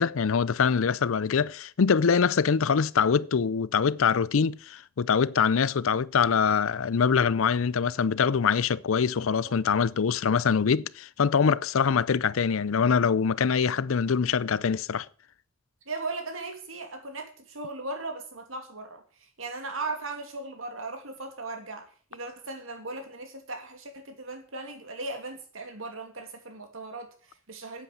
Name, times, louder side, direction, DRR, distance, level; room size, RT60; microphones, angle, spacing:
voice 1, 0.0-15.1, left 6 dB, 75° left, 0.5 m, -24 dB
voice 2, 15.9-27.8, right 3 dB, 75° right, 2.6 m, -38 dB
9.6 x 8.2 x 7.4 m
head